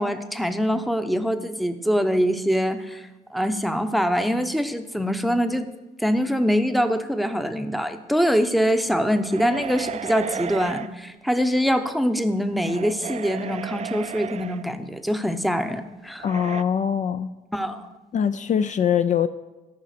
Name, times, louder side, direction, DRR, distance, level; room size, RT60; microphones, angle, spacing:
voice 1, 0.0-5.7 6.0-16.3 17.5-17.9, equal, ahead, 9 dB, 0.7 m, -24 dB
sound 1, 9.2-10.9 12.4-14.6 16.2-16.6, right 8 dB, 45° right, 0.4 m, -34 dB
voice 2, 16.2-17.3 18.1-19.3, left 8 dB, 50° left, 12 dB, 0.4 m, -22 dB
13.5 x 5.7 x 6.6 m, 1.1 s
cardioid pair, 95°, 16 cm